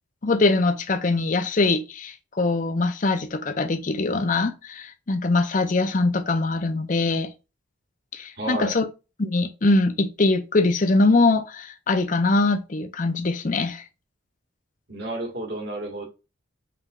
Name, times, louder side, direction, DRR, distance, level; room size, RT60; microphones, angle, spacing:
voice 1, 0.2-7.3 8.1-8.9 9.2-13.8, left 3 dB, 40° left, 0.6 m, -22 dB
voice 2, 8.4-8.7 14.9-16.1, right 2 dB, 55° right, 1.8 m, -31 dB
5.8 x 3.3 x 2.4 m
head